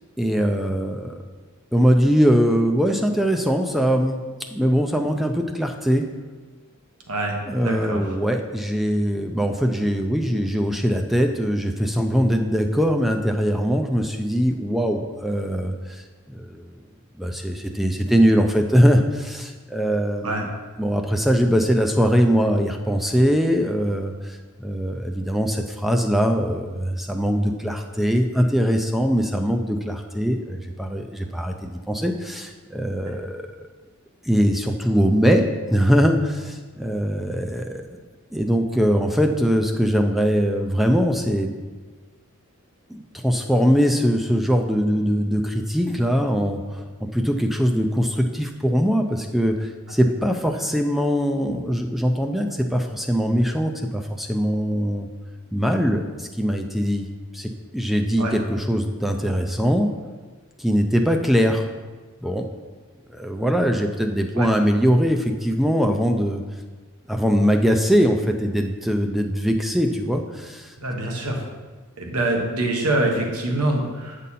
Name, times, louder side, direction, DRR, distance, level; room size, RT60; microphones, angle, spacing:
voice 1, 0.2-1.2 1.7-4.2 4.5-6.1 7.5-16.6 17.2-20.5 20.8-33.7 34.2-37.8 38.3-41.5 42.9-46.8 47.1-55.1 55.5-57.1 57.3-59.9 60.6-61.7 62.2-62.5 63.1-66.4 67.1-70.8, equal, ahead, 4 dB, 0.4 m, -21 dB
voice 2, 7.6-8.1 20.2-20.4 33.0-33.1 58.2-58.3 64.4-64.5 70.8-71.4 72.0-74.2, right 2 dB, 90° right, 1 dB, 1.3 m, -25 dB
8.4 x 5.3 x 4.2 m, 1.3 s
head